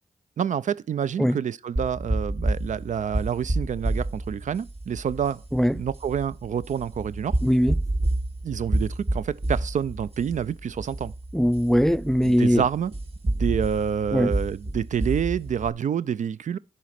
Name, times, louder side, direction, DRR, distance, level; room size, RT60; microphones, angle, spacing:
voice 1, 0.4-5.4 5.7-7.4 8.4-11.1 12.2-12.9 13.2-16.6, right 8 dB, 60° right, 0.4 m, -28 dB
sound 1, 1.8-15.7, right 1 dB, 45° right, 2.1 m, -29 dB
voice 2, 7.4-7.8 11.3-12.6 14.1-14.3, equal, 5° left, 0.5 m, -21 dB
11.0 x 4.3 x 5.8 m
supercardioid pair, 40°, 14 cm